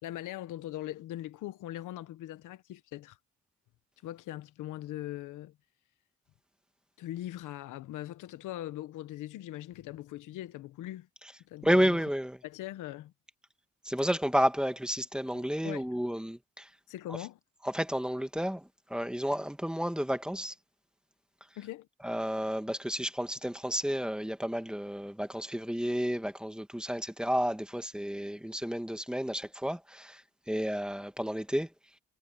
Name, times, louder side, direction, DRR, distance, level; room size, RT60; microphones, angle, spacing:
voice 1, 0.0-3.2 4.0-5.6 7.0-11.1 11.5-12.0 12.4-13.1 15.3-16.0 16.9-17.4 21.6-21.9, left 14 dB, 90° left, 1.2 m, -41 dB
voice 2, 11.6-12.4 13.8-16.7 17.6-20.5 22.0-31.7, equal, 5° right, 2.1 m, -31 dB
cardioid pair, 90°, 30 cm